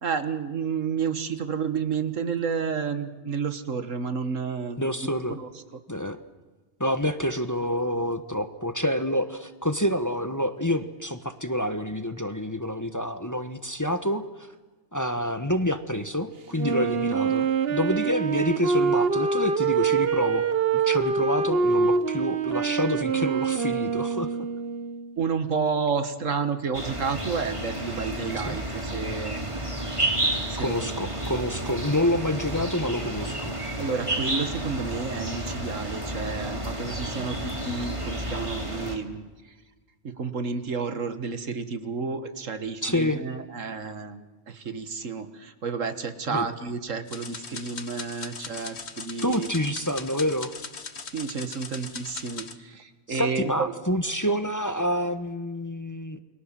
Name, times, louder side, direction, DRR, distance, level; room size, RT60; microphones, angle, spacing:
voice 1, 0.0-4.9 5.3-5.5 25.2-29.5 30.5-30.9 33.8-39.3 40.0-49.5 51.1-53.7, right 5 dB, 85° right, 10 dB, 2.0 m, -31 dB
voice 2, 4.8-5.4 5.9-6.2 6.8-14.5 14.9-20.5 20.7-24.3 28.4-28.6 30.6-33.6 42.8-43.2 46.3-46.5 49.2-50.5 53.1-56.2, left 1 dB, 15° left, 9 dB, 1.2 m, -27 dB
Wind instrument woodwind instrument, 16.5-25.1, right 5 dB, 55° right, 1.3 m, -25 dB
sound 1, 26.7-39.0, right 1 dB, 25° right, 3.0 m, -31 dB
sound 2, 47.1-52.5, left 5 dB, 60° left, 1.8 m, -39 dB
29.0 x 22.5 x 7.6 m, 1.2 s
omnidirectional pair, 1.3 m